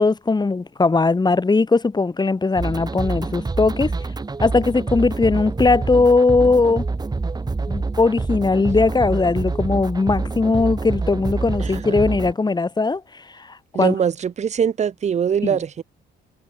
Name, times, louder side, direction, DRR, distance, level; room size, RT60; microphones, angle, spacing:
voice 1, 0.0-3.9 4.4-6.8 7.7-14.0 15.4-15.6, left 3 dB, 20° left, 1.5 m, -19 dB
sound 1, 2.6-12.3, right 3 dB, 20° right, 1.1 m, -26 dB
voice 2, 11.6-12.1 13.7-15.8, right 7 dB, 35° right, 0.5 m, -22 dB
cardioid pair, 90°, 20 cm